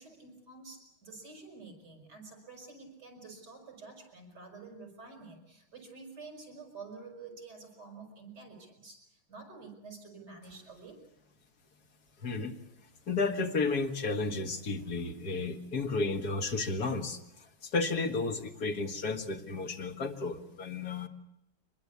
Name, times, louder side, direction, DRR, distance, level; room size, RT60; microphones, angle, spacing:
voice 1, 0.0-11.0 13.0-13.3 14.6-16.1, right 4 dB, 50° right, 3 dB, 6.6 m, -50 dB
voice 2, 12.2-12.6 13.1-17.2 17.6-21.1, left 3 dB, 50° left, 6 dB, 2.2 m, -32 dB
24.5 x 21.5 x 8.4 m, 0.83 s
omnidirectional pair, 2.2 m